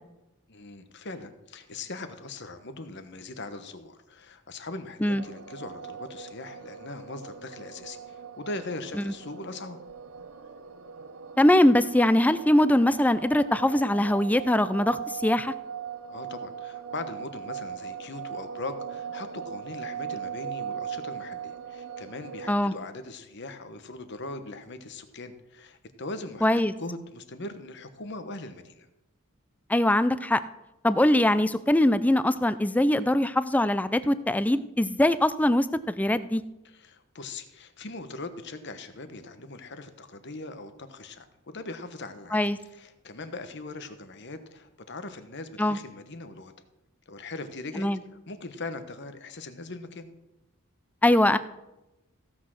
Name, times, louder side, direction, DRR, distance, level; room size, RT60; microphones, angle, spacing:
voice 1, 0.5-9.8 16.0-28.9 36.6-46.5 47.1-50.1, left 2 dB, 55° left, 9 dB, 1.1 m, -40 dB
sound 1, 5.2-22.5, right 7 dB, 80° right, 0.7 m, -39 dB
voice 2, 11.4-15.5 22.5-22.7 26.4-26.7 29.7-30.4 30.8-35.7 36.0-36.4 42.3-42.6 45.6-45.8 47.8-48.0 51.0-51.4, left 1 dB, 5° left, 14 dB, 0.4 m, -22 dB
15.5 x 6.1 x 6.3 m, 0.97 s
head